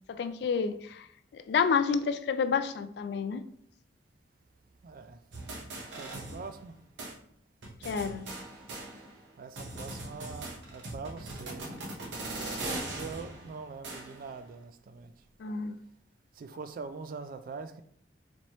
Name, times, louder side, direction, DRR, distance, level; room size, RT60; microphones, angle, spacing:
voice 1, 0.1-1.1 1.3-3.4 7.8-8.2 12.3-12.6 15.4-15.8, left 6 dB, 65° left, 0.3 m, -29 dB
voice 2, 4.8-5.2 5.9-6.7 9.4-15.1 16.4-17.8, right 4 dB, 50° right, 0.3 m, -44 dB
sound 1, 5.3-6.7 7.0-7.1 7.6-9.3 9.6-14.3, right 2 dB, 90° right, 0.9 m, -40 dB
4.2 x 2.9 x 3.0 m
head